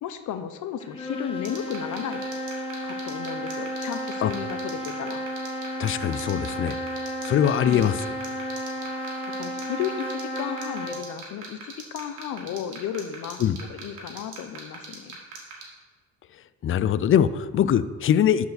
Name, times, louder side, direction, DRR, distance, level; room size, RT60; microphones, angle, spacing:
voice 1, 0.0-2.2 2.8-5.2 7.6-8.0 9.4-13.4 13.7-15.2, left 9 dB, 75° left, 10 dB, 0.7 m, -34 dB
sound 1, 0.8-11.1, equal, 20° left, 1.4 m, -33 dB
sound 2, 1.4-15.6, right 7 dB, 85° right, 1.9 m, -39 dB
voice 2, 5.8-6.7 7.2-7.9 13.4-13.6 16.6-18.5, left 9 dB, 45° left, 15 dB, 0.4 m, -22 dB
11.5 x 4.7 x 4.1 m, 1.4 s
cardioid pair, 90°, 30 cm